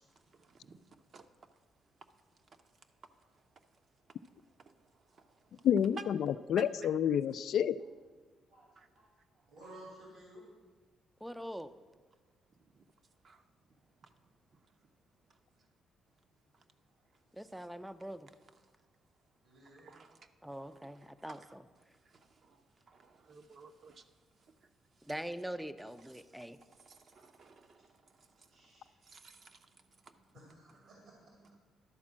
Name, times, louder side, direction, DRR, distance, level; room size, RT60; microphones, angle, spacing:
voice 1, 0.3-1.3 4.6-5.6 6.0-6.1 6.6-6.9 8.8-8.9 12.7-12.8 13.2-13.4 14.0-14.1 16.5-16.6 17.6-17.7 19.6-20.3 20.6-21.5 22.0-24.0 25.0-25.1 26.0-26.3 26.7-28.5 29.0-30.4 30.8-31.1 31.4-31.6, right 4 dB, 50° right, 0.7 m, -55 dB
voice 2, 5.6-7.8, left 9 dB, 70° left, 0.3 m, -29 dB
voice 3, 8.1-8.7 9.0-10.5 16.9-17.0 19.4-19.9 28.5-28.9 30.3-31.3, right 1 dB, 80° right, 2.3 m, -56 dB
voice 4, 11.2-11.7 17.3-18.3 20.4-21.6 25.0-26.6, right 1 dB, 5° right, 0.4 m, -43 dB
11.5 x 4.3 x 7.3 m
cardioid pair, 90°, 0 cm